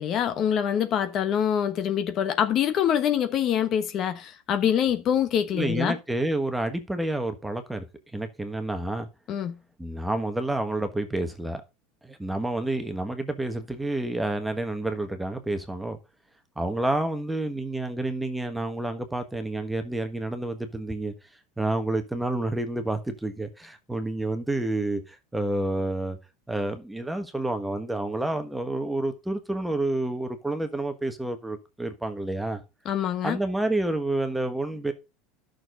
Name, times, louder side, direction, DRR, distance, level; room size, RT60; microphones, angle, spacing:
voice 1, 0.0-5.9 9.3-9.5 32.8-33.4, left 9 dB, 35° left, 1.1 m, -25 dB
voice 2, 5.5-7.8 8.1-9.1 9.8-11.6 12.0-16.0 16.6-21.1 21.6-26.2 26.5-32.6 33.2-34.9, right 2 dB, 5° right, 1.3 m, -29 dB
12.0 x 6.5 x 3.9 m
supercardioid pair, 155°, 0 cm